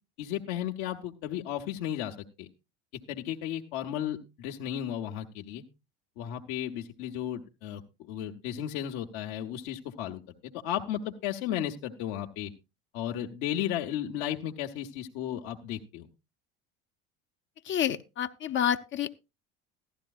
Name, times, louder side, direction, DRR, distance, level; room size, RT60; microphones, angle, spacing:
voice 1, 0.2-2.5 2.9-5.6 6.2-12.5 12.9-16.1, left 11 dB, 70° left, 1.0 m, -34 dB
voice 2, 17.6-19.1, left 10 dB, 40° left, 0.5 m, -29 dB
15.0 x 12.0 x 2.3 m
supercardioid pair, 95°, 30 cm